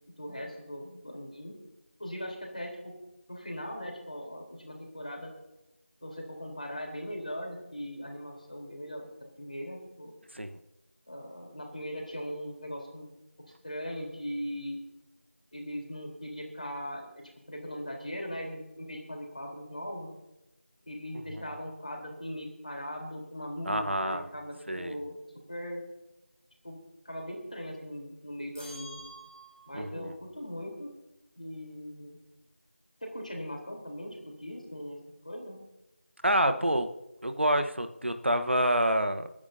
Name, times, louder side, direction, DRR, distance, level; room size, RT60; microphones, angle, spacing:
voice 1, 0.2-1.6 2.0-2.9 3.3-5.3 6.0-9.1 9.4-10.1 11.1-13.1 13.6-14.8 15.5-17.1 17.5-20.1 20.8-25.2 25.5-25.8 26.6-26.8 27.0-29.0 29.7-30.9 31.4-32.2 33.0-35.0 35.2-35.6, equal, 40° left, 1 dB, 3.6 m, -39 dB
voice 2, 23.7-24.2 24.7-24.9 29.7-30.1 36.2-36.9 37.2-39.3, right 1 dB, 60° right, 8 dB, 1.1 m, -27 dB
sound 1, 28.5-29.9, right 1 dB, 15° right, 3.3 m, -48 dB
29.0 x 10.0 x 2.7 m, 0.96 s
figure-of-eight pair, 180°, 7 cm